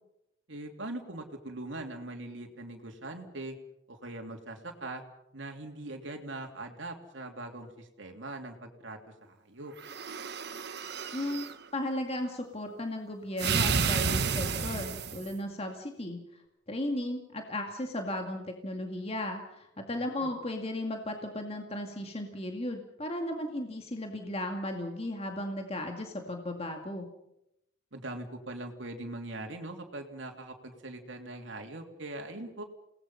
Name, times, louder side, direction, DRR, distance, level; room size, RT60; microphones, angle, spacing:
voice 1, 0.5-3.6 3.9-5.0 5.3-9.7 19.9-20.3 27.9-32.6, right 2 dB, 85° right, 2 dB, 3.1 m, -41 dB
sound 1, 9.8-11.5 13.4-15.3, right 5 dB, 60° right, 1.2 m, -31 dB
voice 2, 11.1-11.4 11.7-16.2 16.7-27.1, left 1 dB, 35° left, 3 dB, 2.2 m, -35 dB
29.0 x 19.5 x 5.7 m, 0.83 s
head